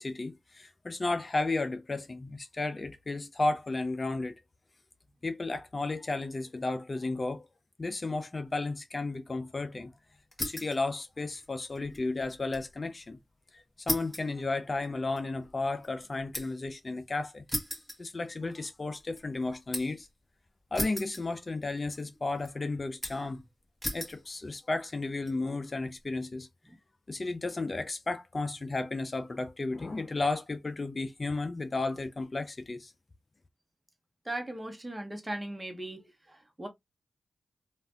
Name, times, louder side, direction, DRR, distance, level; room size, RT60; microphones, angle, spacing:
voice 1, 0.0-4.3 5.2-7.5 7.8-9.9 10.4-13.2 13.9-17.4 18.0-20.1 20.7-23.4 23.9-26.5 27.1-32.9, left 3 dB, 45° left, 0.5 m, -33 dB
sound 1, 10.3-10.8 11.2-12.7 13.0-13.1 13.9-16.7 17.5-18.6 19.0-20.0 20.7-21.6 21.9-22.5 23.0-23.4 23.8-24.2 24.9-25.3, left 1 dB, 10° left, 1.5 m, -37 dB
voice 2, 34.2-36.7, right 1 dB, 20° right, 1.1 m, -38 dB
3.2 x 2.5 x 2.5 m
cardioid pair, 40°, 0 cm